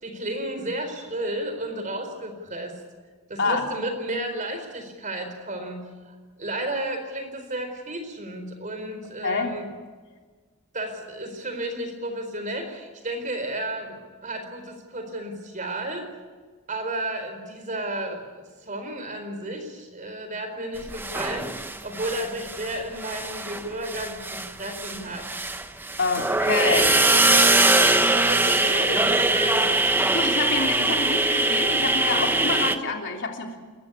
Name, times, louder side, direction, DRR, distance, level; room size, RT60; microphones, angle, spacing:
voice 1, 0.0-2.8 3.3-9.7 10.7-16.1 16.7-25.4 28.0-29.6, right 1 dB, 35° right, 6 dB, 4.3 m, -33 dB
voice 2, 9.2-9.5 26.0-28.3 28.7-28.8 30.1-33.6, left 4 dB, 55° left, 2 dB, 3.3 m, -27 dB
sound 1, 20.9-22.7 23.0-32.8, right 2 dB, 10° right, 0.9 m, -22 dB
29.0 x 14.5 x 8.5 m, 1.5 s
head